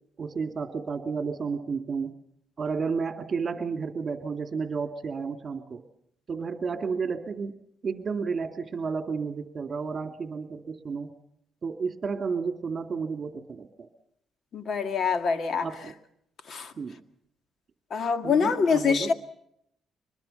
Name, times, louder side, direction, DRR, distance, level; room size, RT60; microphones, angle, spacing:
voice 1, 0.2-2.1 2.6-5.8 6.3-7.6 7.8-11.1 11.6-13.9 15.6-15.9 16.8-17.0 18.2-19.1, right 5 dB, 40° right, 2.6 m, -32 dB
voice 2, 14.5-15.7 16.5-16.7 17.9-19.1, left 5 dB, 55° left, 1.9 m, -25 dB
24.5 x 21.0 x 5.7 m
cardioid pair, 90°, 0 cm